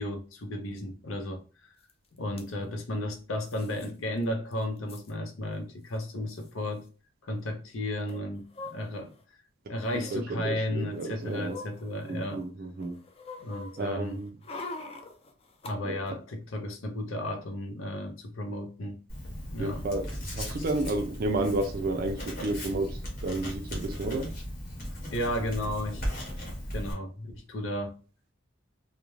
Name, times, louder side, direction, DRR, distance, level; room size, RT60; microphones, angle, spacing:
voice 1, 0.0-1.4 2.1-6.8 7.2-9.1 9.7-12.4 13.4-14.2 15.6-19.0 19.5-19.8 25.1-26.0 26.7-27.9, left 1 dB, 90° left, 0.6 m, -34 dB
sound 1, 1.9-2.0 2.2-2.5 3.5-3.9 4.2-4.3 4.5-5.1 6.0-6.1 6.3-6.5 8.1-9.2 9.8-10.2 10.8-12.4 12.8-15.7 16.1-16.2, left 3 dB, 30° left, 0.3 m, -44 dB
voice 2, 9.9-11.6 12.0-13.0 13.8-14.3 15.8-16.0 19.6-20.1 20.3-24.3, right 2 dB, 50° right, 0.3 m, -31 dB
Writing, 19.1-26.9, equal, 50° left, 1.0 m, -37 dB
2.4 x 2.1 x 3.0 m
head